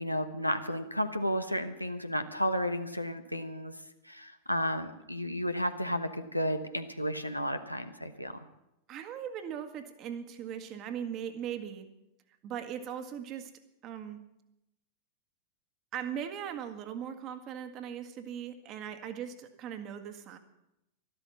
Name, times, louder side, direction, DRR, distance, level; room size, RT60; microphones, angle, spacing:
voice 1, 0.0-3.7 4.1-8.3, equal, 90° left, 8 dB, 1.0 m, -32 dB
voice 2, 8.9-11.9 12.4-13.5 13.8-14.2 15.9-20.4, right 9 dB, 35° right, 8 dB, 1.6 m, -39 dB
13.0 x 12.5 x 7.2 m, 0.86 s
figure-of-eight pair, 90°, 0 cm